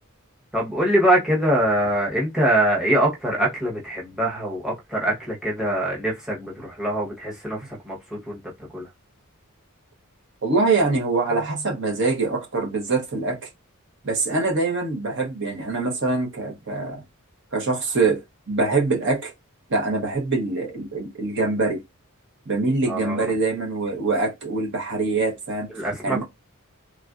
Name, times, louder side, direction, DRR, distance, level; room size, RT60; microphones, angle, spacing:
voice 1, 0.5-8.4 8.7-8.9 22.9-23.3 25.7-26.2, right 1 dB, 5° right, 0.9 m, -23 dB
voice 2, 10.4-13.4 14.0-17.0 17.5-19.3 19.7-21.8 22.5-25.7 26.0-26.2, right 3 dB, 60° right, 0.9 m, -24 dB
3.3 x 2.4 x 2.4 m
head